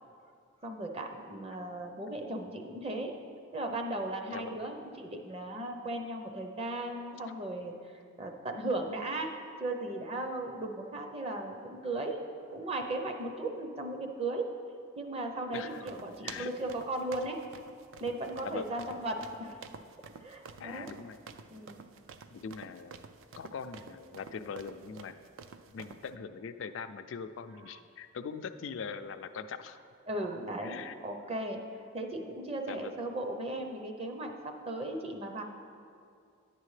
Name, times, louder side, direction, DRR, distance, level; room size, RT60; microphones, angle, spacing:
voice 1, 0.6-3.1 3.5-7.7 8.2-9.3 9.6-12.2 12.5-14.5 15.0-17.4 18.0-19.6 20.2-20.9 21.5-21.8 30.1-31.6 31.9-35.4, right 2 dB, 30° right, 4 dB, 0.6 m, -36 dB
voice 2, 15.5-15.9 16.2-16.5 18.4-18.7 20.6-21.2 22.3-23.0 23.4-25.1 25.7-29.8 30.6-30.9 32.7-32.9, left 6 dB, 75° left, 10 dB, 0.4 m, -41 dB
sound 1, 15.5-26.1, right 5 dB, 80° right, 0.4 m, -50 dB
10.5 x 8.2 x 3.2 m, 2.4 s
head